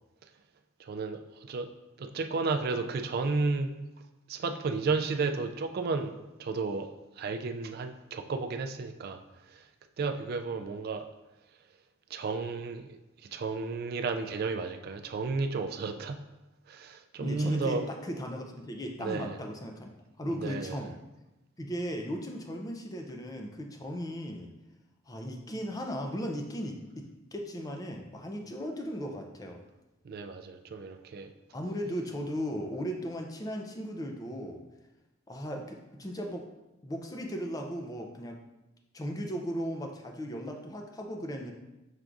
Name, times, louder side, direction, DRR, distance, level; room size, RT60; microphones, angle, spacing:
voice 1, 0.8-1.7 2.0-3.7 4.3-6.1 6.4-6.9 7.2-9.2 9.5-9.7 10.0-11.1 12.1-13.0 13.3-16.2 16.7-17.9 19.0-19.4 20.3-20.8 30.0-31.3, right 4 dB, 50° right, 7 dB, 0.3 m, -32 dB
voice 2, 17.2-19.9 20.2-21.0 21.6-24.5 25.1-29.6 31.5-34.6 35.3-36.5 36.8-38.4 38.9-41.5, equal, 20° left, 2 dB, 0.4 m, -37 dB
5.9 x 3.4 x 2.5 m, 1.0 s
head